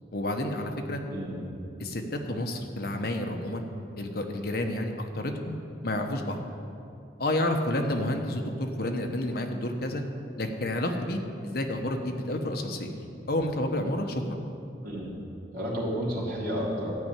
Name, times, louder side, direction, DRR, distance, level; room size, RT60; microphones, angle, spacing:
voice 1, 0.1-1.0 1.8-5.6 5.8-6.4 7.2-10.0 10.4-11.2 11.4-12.9 13.3-14.4, left 1 dB, 55° left, 4 dB, 1.0 m, -30 dB
voice 2, 1.1-1.4 14.8-15.2 15.5-17.0, equal, 50° right, -6 dB, 3.3 m, -31 dB
13.0 x 5.5 x 9.0 m, 2.6 s
head